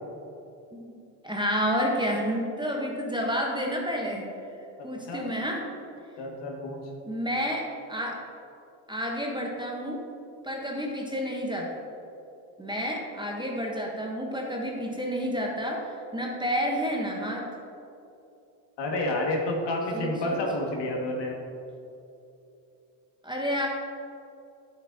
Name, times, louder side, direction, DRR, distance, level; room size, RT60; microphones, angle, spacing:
voice 1, 1.2-4.4 4.8-5.7 7.0-8.2 8.9-10.0 10.4-11.8 12.6-15.9 16.1-17.4 19.9-20.4 23.2-23.7, equal, 10° right, -1 dB, 1.0 m, -30 dB
voice 2, 6.2-6.8 18.8-21.4, left 1 dB, 55° left, -1 dB, 1.9 m, -29 dB
9.0 x 7.8 x 2.8 m, 2.8 s
supercardioid pair, 90°, 48 cm